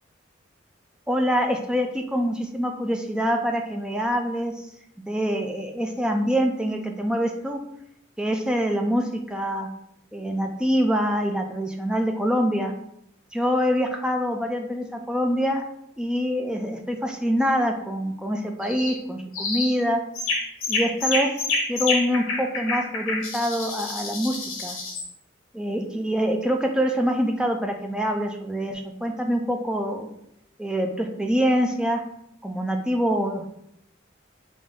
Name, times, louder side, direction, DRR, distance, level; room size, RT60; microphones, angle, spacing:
voice 1, 1.1-4.7 5.1-7.6 8.2-9.7 10.1-12.7 13.3-15.6 16.0-20.0 20.7-21.3 21.7-24.8 25.5-30.1 30.6-32.0 32.4-33.5, equal, 5° right, 3 dB, 0.3 m, -25 dB
sound 1, 18.6-19.0 19.3-19.8 20.2-25.1, left 3 dB, 85° left, 0.8 m, -28 dB
3.6 x 2.5 x 3.5 m, 0.74 s
head